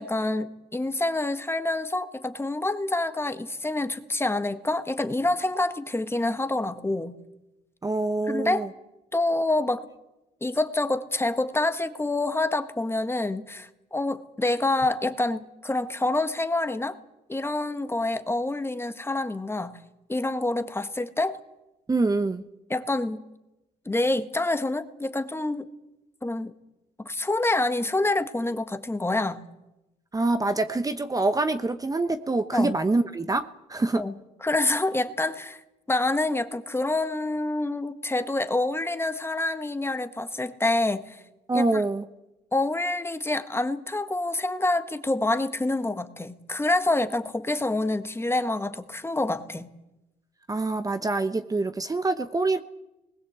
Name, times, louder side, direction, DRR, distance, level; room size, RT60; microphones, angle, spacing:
voice 1, 0.0-7.1 8.3-8.7 9.1-9.9 10.4-17.0 17.3-19.8 20.1-21.4 22.7-23.2 23.8-25.7 26.2-26.5 27.0-29.4 32.5-32.7 33.9-34.1 34.4-35.6 35.9-41.2 41.5-41.8 42.5-49.7, left 2 dB, 15° left, 10 dB, 1.5 m, -27 dB
voice 2, 7.8-8.7 21.9-22.4 30.1-34.0 41.5-42.0 50.5-52.6, right 2 dB, 20° right, 9 dB, 1.0 m, -25 dB
20.5 x 19.0 x 8.2 m, 0.96 s
cardioid pair, 80°, 17 cm